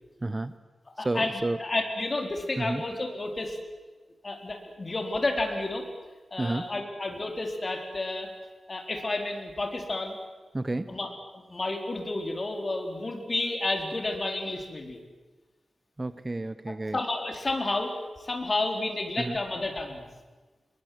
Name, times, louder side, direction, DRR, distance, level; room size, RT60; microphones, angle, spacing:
voice 1, 0.2-0.5 1.0-1.6 2.6-2.8 6.4-6.7 10.5-11.0 16.0-17.0 19.2-19.4, right 2 dB, 25° right, 13 dB, 0.8 m, -31 dB
voice 2, 1.0-3.6 4.2-5.9 6.3-8.3 8.7-10.2 10.9-15.0 16.7-17.9 18.2-20.1, left 2 dB, 35° left, 4 dB, 4.4 m, -31 dB
28.0 x 22.5 x 8.0 m, 1.3 s
wide cardioid pair, 115°, 0 cm